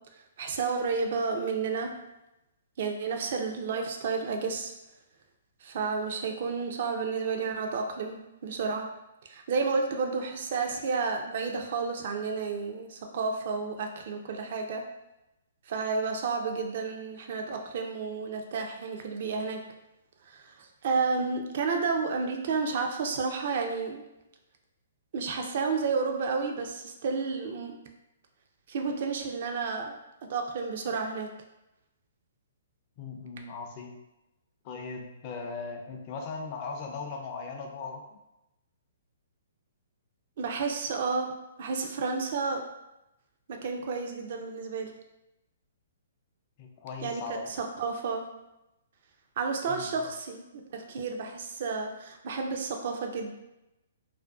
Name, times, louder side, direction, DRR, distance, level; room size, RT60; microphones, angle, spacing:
voice 1, 0.1-2.0 2.8-4.7 5.6-8.9 9.2-14.9 15.7-19.6 20.2-24.0 25.1-27.8 28.7-30.0 30.3-31.3 40.4-41.3 41.6-42.6 43.5-44.9 47.0-47.2 47.6-48.2 49.4-50.4 50.7-53.3, right 4 dB, 55° right, 4 dB, 0.4 m, -31 dB
voice 2, 33.0-34.0 34.6-38.2 46.6-47.6 49.7-49.9, left 4 dB, 40° left, 3 dB, 0.4 m, -38 dB
2.4 x 2.2 x 2.3 m, 0.93 s
hypercardioid pair, 130°, 0 cm